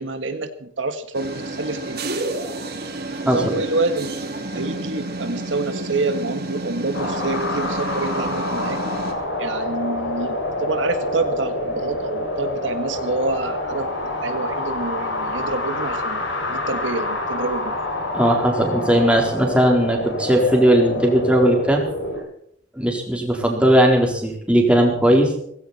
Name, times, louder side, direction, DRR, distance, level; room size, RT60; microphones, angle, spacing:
voice 1, 0.0-2.0 3.2-8.8 9.4-16.2 16.5-17.8, right 3 dB, 80° right, 8 dB, 1.7 m, -27 dB
sound 1, 1.1-9.1, right 2 dB, 55° right, 3.0 m, -30 dB
sound 2, 6.9-22.2, left 1 dB, 90° left, 6.4 m, -27 dB
voice 2, 18.1-21.8 22.8-25.3, right 1 dB, 5° right, 1 dB, 4.1 m, -17 dB
18.0 x 16.0 x 4.3 m, 0.67 s
head